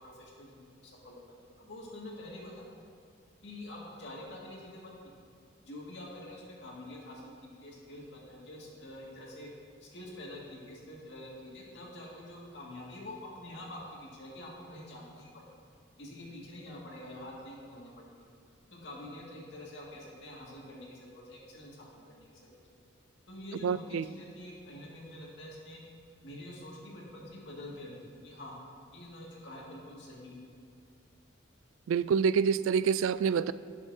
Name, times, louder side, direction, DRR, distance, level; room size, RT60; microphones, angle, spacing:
voice 1, 0.0-2.7 3.4-5.1 5.7-9.5 9.8-15.6 16.0-18.3 18.7-22.6 23.3-25.8 26.2-28.5 28.9-30.4, left 1 dB, 60° left, -4 dB, 2.2 m, -46 dB
voice 2, 23.6-24.0 31.9-33.5, right 6 dB, 85° right, 16 dB, 0.3 m, -27 dB
17.5 x 7.1 x 2.8 m, 2.2 s
head